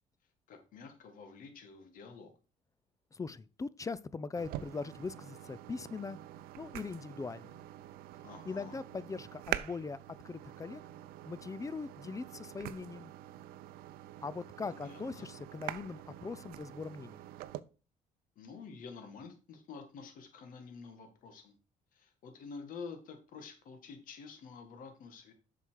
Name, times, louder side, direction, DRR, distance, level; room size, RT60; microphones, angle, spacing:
voice 1, 0.5-2.3 8.2-8.8 14.6-15.3 18.4-21.5 21.9-25.3, left 5 dB, 65° left, 1.9 m, -49 dB
voice 2, 3.1-6.2 6.6-7.6 8.5-10.0 10.2-10.8 11.3-13.1 14.2-17.2, left 4 dB, 20° left, 0.5 m, -41 dB
sound 1, 4.4-17.6, right 14 dB, 80° right, 0.6 m, -45 dB
7.6 x 5.8 x 4.7 m
supercardioid pair, 85°, 15 cm